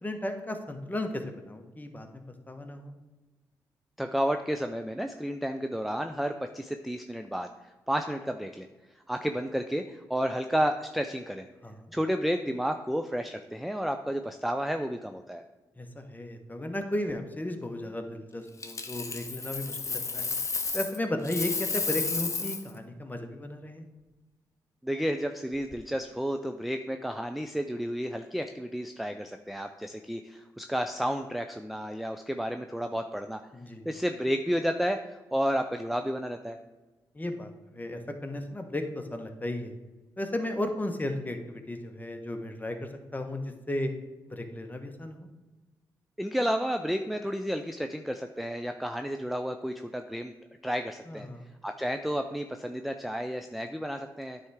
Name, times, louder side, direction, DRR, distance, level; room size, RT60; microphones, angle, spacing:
voice 1, 0.0-2.9 11.6-11.9 15.8-20.3 20.7-23.9 33.5-33.9 37.1-39.7 40.2-43.9 44.3-45.3 51.1-51.4, left 1 dB, 20° left, 5 dB, 1.1 m, -35 dB
voice 2, 4.0-7.5 7.9-8.7 9.1-11.5 11.9-15.4 24.8-33.4 33.8-36.6 46.2-50.3 50.6-51.3 51.6-54.4, equal, ahead, 6 dB, 0.5 m, -31 dB
Coin (dropping), 18.6-21.0 21.2-22.7 25.5-25.7, left 4 dB, 40° left, 0.8 m, -32 dB
9.2 x 3.4 x 4.8 m, 1.2 s
supercardioid pair, 45°, 8 cm